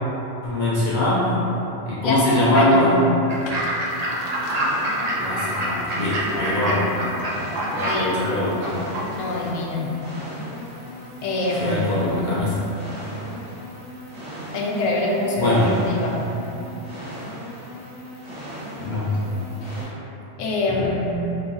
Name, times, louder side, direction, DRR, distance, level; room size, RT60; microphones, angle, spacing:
voice 1, 0.4-1.3 1.9-3.0 5.2-7.1 7.7-8.8 11.6-12.7 15.4-15.8 18.8-19.5, left 1 dB, 60° left, -8 dB, 0.5 m, -22 dB
voice 2, 2.0-2.9 3.5-3.6 7.9-8.2 9.2-9.9 11.2-11.9 14.5-15.6 15.8-16.2 19.6-19.9 20.4-21.3, left 2 dB, 75° left, -2 dB, 0.9 m, -25 dB
Fowl / Bird, 3.3-9.5, right 1 dB, 70° right, 0.3 m, -27 dB
sound 1, 3.9-19.8, equal, 25° right, 0.8 m, -37 dB
3.1 x 2.3 x 3.9 m, 3.0 s
omnidirectional pair, 1.3 m